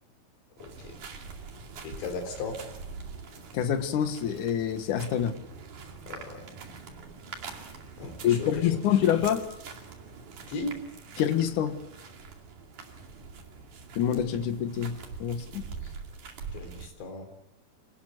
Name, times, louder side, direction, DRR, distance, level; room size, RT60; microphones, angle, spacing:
voice 1, 0.6-1.0 1.8-2.6 6.1-6.4 8.0-8.7 10.5-10.7 16.5-17.3, left 3 dB, 75° left, 6 dB, 6.0 m, -37 dB
sound 1, 0.6-16.9, right 5 dB, 50° right, 3.6 m, -44 dB
voice 2, 3.5-5.4 8.2-9.5 11.2-11.8 14.0-15.6, left 9 dB, 60° left, 8 dB, 2.4 m, -26 dB
27.0 x 19.5 x 7.9 m, 0.83 s
omnidirectional pair, 5.1 m